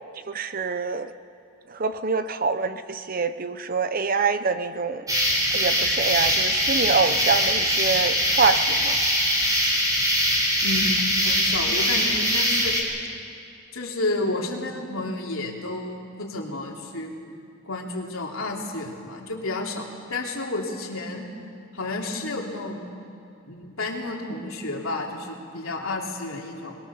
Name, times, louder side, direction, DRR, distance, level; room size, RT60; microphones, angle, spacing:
voice 1, 0.3-1.1 1.7-5.0 5.5-9.0, right 4 dB, 40° right, 11 dB, 0.7 m, -25 dB
sound 1, 5.1-12.8, equal, 15° right, 3.8 m, -22 dB
voice 2, 10.6-12.7 13.7-17.1 17.6-21.2 21.7-22.9 23.5-26.8, left 2 dB, 70° left, 0 dB, 3.2 m, -31 dB
23.0 x 21.5 x 7.1 m, 2.6 s
head